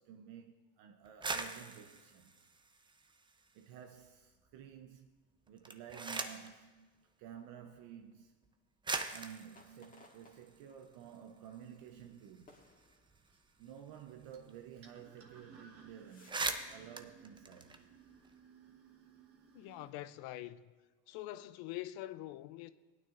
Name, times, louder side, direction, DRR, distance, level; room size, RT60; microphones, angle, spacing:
voice 1, 0.0-2.5 3.5-5.2 5.5-8.3 9.1-12.6 13.6-17.8, right 9 dB, 65° right, 0.8 m, -52 dB
sound 1, 1.0-3.6 4.0-4.7 5.5-6.6 7.6-7.7 8.4-8.5 8.8-11.2 11.5-11.6 11.9-14.5 14.7-14.9 15.2-15.4 15.8-15.9 16.1-18.3, right 3 dB, 10° right, 0.6 m, -42 dB
sound 2, 6.0-6.6 7.0-7.1 9.4-10.8 11.5-11.7 12.5-13.3 15.1-15.4 15.7-16.3, left 2 dB, 20° left, 1.6 m, -63 dB
sound 3, 10.4-19.9, right 5 dB, 35° right, 1.2 m, -62 dB
voice 2, 19.5-20.6 21.1-22.7, left 15 dB, 70° left, 0.5 m, -44 dB
17.5 x 9.2 x 2.5 m
supercardioid pair, 100°, 38 cm